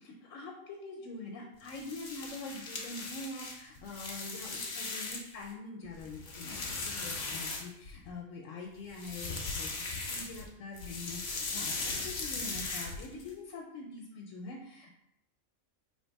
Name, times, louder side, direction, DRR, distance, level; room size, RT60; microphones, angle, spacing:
voice 1, 0.0-6.6 6.8-14.9, left 3 dB, 75° left, 0 dB, 0.9 m, -44 dB
sound 1, 1.6-5.4 5.8-8.1 8.9-10.5 10.7-13.3, left 3 dB, 45° left, 0.6 m, -38 dB
3.0 x 2.9 x 4.5 m, 0.81 s
omnidirectional pair, 1.4 m